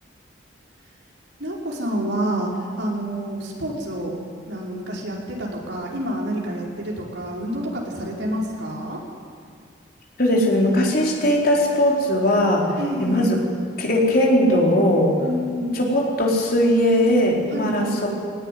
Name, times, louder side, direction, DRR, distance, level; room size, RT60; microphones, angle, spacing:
voice 1, 1.4-4.1 4.5-9.0 12.8-13.4 15.2-15.9 17.5-18.1, equal, 75° right, -3 dB, 5.3 m, -28 dB
voice 2, 10.2-12.7 13.0-13.4 13.8-15.1 15.8-18.1, left 1 dB, 50° left, -2 dB, 4.4 m, -19 dB
20.5 x 19.0 x 9.5 m, 2.1 s
head